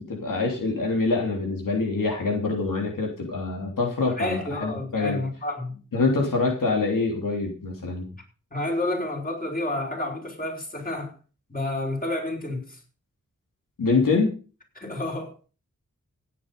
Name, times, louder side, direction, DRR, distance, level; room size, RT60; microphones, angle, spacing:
voice 1, 0.0-5.2 5.9-8.1 13.8-14.3, left 3 dB, 85° left, 3.1 m, -25 dB
voice 2, 4.2-5.8 8.5-11.1 11.5-12.8 14.8-15.3, left 1 dB, 25° left, 5.2 m, -30 dB
16.5 x 8.9 x 5.2 m
wide cardioid pair, 65°, 32 cm